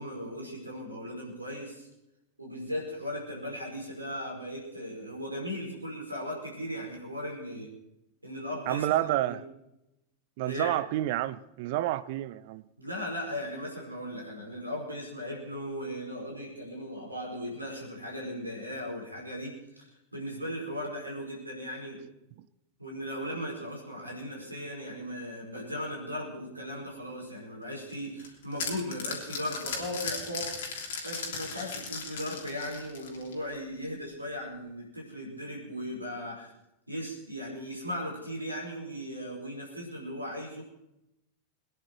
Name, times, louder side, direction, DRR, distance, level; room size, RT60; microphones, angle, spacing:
voice 1, 0.0-1.9 2.4-7.7 8.2-8.9 9.1-9.4 10.4-10.7 12.8-22.0 22.8-36.5 36.9-40.6, equal, 85° right, 4.9 m, -37 dB
voice 2, 8.7-9.4 10.4-12.6, right 14 dB, 50° right, 0.6 m, -29 dB
sound 1, 27.9-33.4, left 5 dB, 55° left, 3.2 m, -37 dB
22.0 x 10.5 x 4.6 m
figure-of-eight pair, 90°, 0 cm